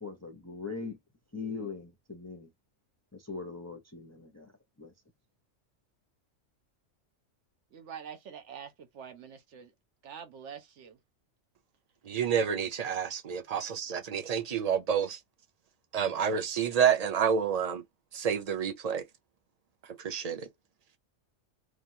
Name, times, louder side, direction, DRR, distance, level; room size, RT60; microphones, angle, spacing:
voice 1, 0.0-1.0 1.3-2.5 3.1-4.5 4.8-4.9, left 4 dB, 25° left, 0.4 m, -40 dB
voice 2, 7.7-9.7 10.0-11.0 13.5-13.6, right 7 dB, 70° right, 1.0 m, -46 dB
voice 3, 12.0-15.2 15.9-17.8 18.1-19.0 19.8-20.5, right 7 dB, 45° right, 0.6 m, -29 dB
3.1 x 2.3 x 2.7 m
omnidirectional pair, 1.3 m